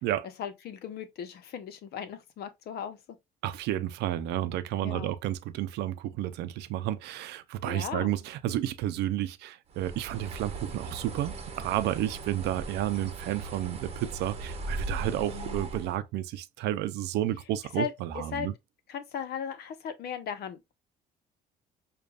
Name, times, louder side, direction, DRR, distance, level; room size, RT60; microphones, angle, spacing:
voice 1, 0.4-3.0 4.8-5.1 7.6-8.1 15.2-15.6 17.8-17.9 18.3-18.5 18.9-20.7, left 7 dB, 70° left, 0.9 m, -37 dB
voice 2, 3.4-18.5, right 13 dB, 80° right, 0.6 m, -31 dB
Bird, 9.7-16.0, right 3 dB, 40° right, 0.9 m, -38 dB
6.6 x 2.5 x 2.4 m
cardioid pair, 110°, 17 cm